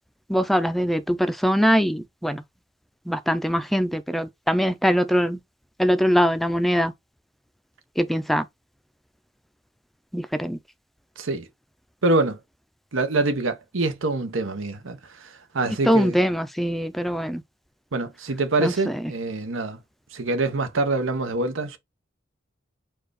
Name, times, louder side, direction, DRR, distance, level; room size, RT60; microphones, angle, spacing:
voice 1, 0.3-2.4 3.1-5.4 5.8-6.9 8.0-8.5 10.1-10.6 15.9-17.4 18.6-18.7, equal, ahead, 0.4 m, -22 dB
voice 2, 11.2-11.5 12.0-12.4 12.9-16.2 17.9-19.8 20.1-21.8, right 2 dB, 85° right, 0.9 m, -25 dB
4.6 x 2.4 x 4.7 m
head